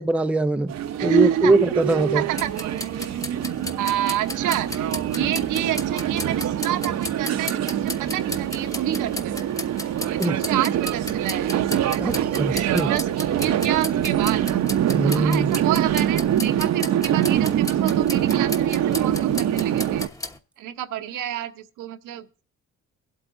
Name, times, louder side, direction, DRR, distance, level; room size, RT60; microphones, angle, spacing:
voice 1, 0.0-2.2 5.2-5.3 10.2-10.4 12.0-12.9 14.9-15.5, right 2 dB, 5° right, 0.4 m, -22 dB
sound 1, 0.7-20.1, right 10 dB, 60° right, 0.7 m, -24 dB
voice 2, 1.0-1.5 2.1-2.5 3.8-9.5 10.1-11.5 11.9-14.5 15.0-20.1 20.6-22.3, right 12 dB, 85° right, 0.9 m, -30 dB
sound 2, 2.4-20.4, left 1 dB, 10° left, 1.0 m, -36 dB
22.5 x 8.2 x 2.6 m
cardioid pair, 90°, 30 cm